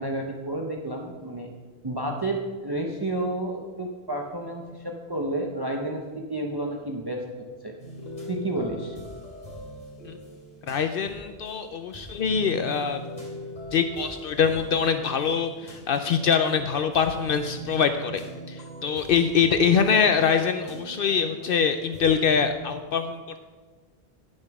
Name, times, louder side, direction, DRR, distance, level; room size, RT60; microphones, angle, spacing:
voice 1, 0.0-1.5 1.8-7.2 7.6-7.7 8.3-9.0, right 1 dB, 25° right, 1 dB, 0.8 m, -30 dB
sound 1, 7.8-22.5, equal, 40° left, 2.6 m, -41 dB
voice 2, 10.7-13.0 13.7-18.2 18.5-23.4, left 6 dB, 65° left, 8 dB, 0.7 m, -24 dB
11.0 x 6.4 x 5.9 m, 1.4 s
omnidirectional pair, 1.0 m